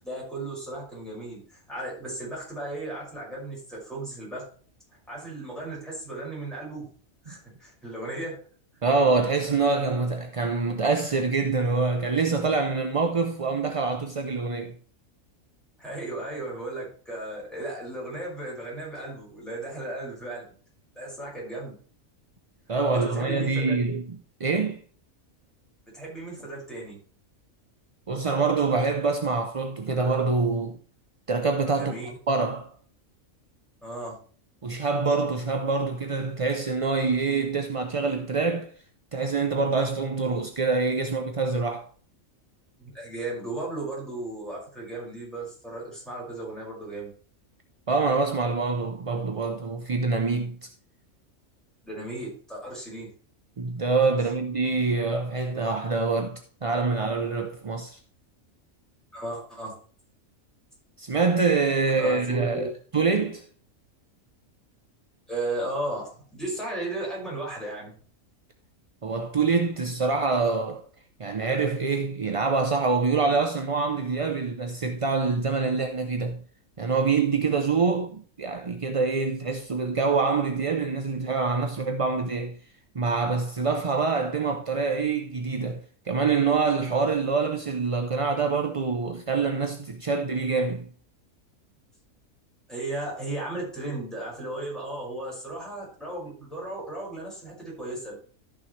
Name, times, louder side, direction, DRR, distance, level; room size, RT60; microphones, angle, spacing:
voice 1, 0.0-4.4 5.1-6.9 7.2-8.4 15.8-20.4 20.9-21.7 22.9-23.8 25.9-27.0 31.8-32.1 33.8-34.2 42.8-47.1 51.8-53.1 54.2-54.3 59.1-59.7 61.9-62.7 65.3-67.9 92.7-98.2, right 2 dB, ahead, 5.6 m, -35 dB
voice 2, 8.8-14.8 22.7-24.1 24.4-24.8 28.1-30.8 31.3-32.0 32.3-32.7 34.6-38.7 39.1-41.9 47.9-50.7 53.6-58.0 61.0-62.6 62.9-63.4 69.0-70.8 71.2-76.4 76.8-82.6 82.9-90.9, right 4 dB, 40° right, 0.5 m, -25 dB
14.0 x 6.2 x 3.2 m
omnidirectional pair, 1.4 m